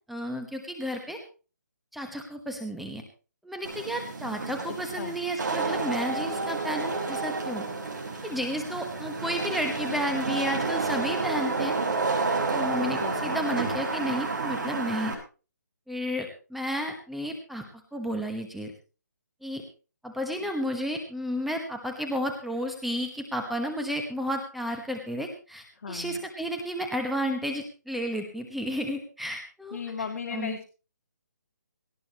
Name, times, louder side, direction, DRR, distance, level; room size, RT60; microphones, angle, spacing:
voice 1, 0.1-1.2 1.9-3.0 3.4-7.6 8.2-11.8 12.5-15.1 15.9-17.6 17.9-18.7 19.4-19.6 20.0-29.8 30.3-30.6, equal, ahead, 4 dB, 1.1 m, -32 dB
Wind / Rain, 3.7-15.1, right 3 dB, 70° right, 6.0 m, -30 dB
voice 2, 4.7-5.2 12.9-13.4 25.8-26.2 29.7-30.6, left 5 dB, 55° left, 4 dB, 1.8 m, -36 dB
18.5 x 14.0 x 3.0 m, 0.34 s
hypercardioid pair, 160°, 10 cm